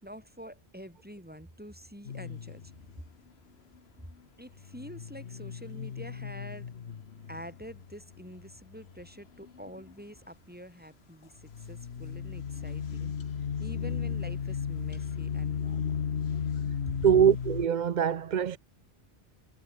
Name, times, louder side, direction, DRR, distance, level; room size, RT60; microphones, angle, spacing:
voice 1, 0.0-2.7 4.4-6.7 7.3-13.1 13.6-16.1 16.9-17.0, equal, 10° right, 4.7 m, -47 dB
sound 1, 2.1-3.0 4.5-9.1 9.4-9.9 11.4-17.7, left 7 dB, 80° left, 1.4 m, -35 dB
voice 2, 17.0-18.6, right 8 dB, 50° right, 0.7 m, -23 dB
omnidirectional pair, 1.0 m